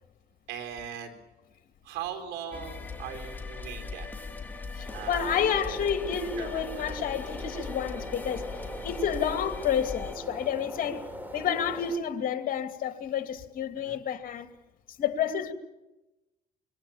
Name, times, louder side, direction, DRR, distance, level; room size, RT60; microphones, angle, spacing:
voice 1, 0.5-1.2 1.8-4.1 4.9-5.8 6.4-6.9 13.8-14.0, right 9 dB, 90° right, 4.2 m, -40 dB
sound 1, 2.5-10.1, left 4 dB, 10° left, 2.8 m, -40 dB
voice 2, 4.7-14.5 15.0-15.5, left 8 dB, 55° left, 2.5 m, -30 dB
sound 2, 4.8-12.0, equal, 10° right, 3.6 m, -41 dB
25.5 x 23.5 x 7.3 m
cardioid pair, 110°, 17 cm